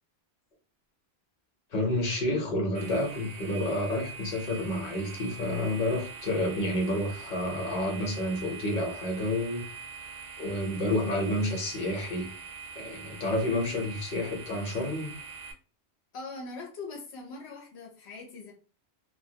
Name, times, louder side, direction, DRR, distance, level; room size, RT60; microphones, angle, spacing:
voice 1, 1.7-9.6 10.4-12.3 12.8-15.1, left 1 dB, 50° left, 0.9 m, -29 dB
sound 1, 2.7-15.5, right 5 dB, 70° right, 0.7 m, -44 dB
voice 2, 16.1-18.5, left 3 dB, 85° left, 0.9 m, -41 dB
2.2 x 2.1 x 2.7 m
omnidirectional pair, 1.1 m